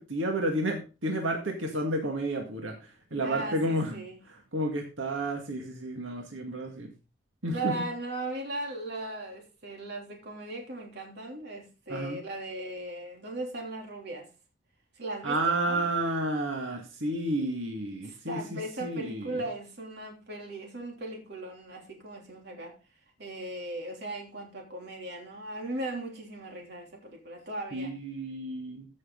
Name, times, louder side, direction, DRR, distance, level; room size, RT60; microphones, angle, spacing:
voice 1, 0.0-2.8 3.1-4.0 4.5-6.9 7.4-7.7 11.9-12.2 15.2-19.4 27.7-28.9, right 1 dB, 90° right, 2.1 m, -31 dB
voice 2, 3.2-4.2 7.5-14.3 15.0-15.8 18.0-22.7 23.2-27.9, right 2 dB, 60° right, 3.2 m, -38 dB
15.0 x 6.4 x 3.9 m
head